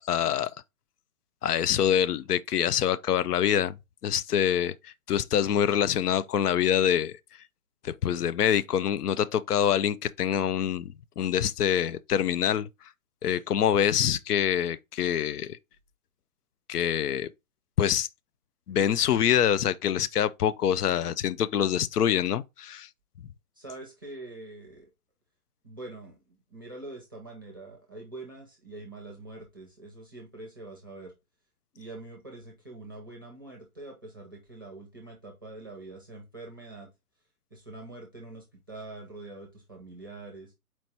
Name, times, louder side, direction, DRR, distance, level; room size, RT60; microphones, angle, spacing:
voice 1, 0.1-0.5 1.4-3.8 4.0-7.1 7.8-12.7 13.2-15.6 16.7-17.3 17.8-18.1 18.7-22.9, left 9 dB, 90° left, 0.6 m, -25 dB
voice 2, 23.5-24.9 25.6-31.1 31.7-36.9 37.5-40.5, right 2 dB, 15° right, 0.6 m, -44 dB
4.4 x 2.8 x 4.4 m
hypercardioid pair, 175°, 45 cm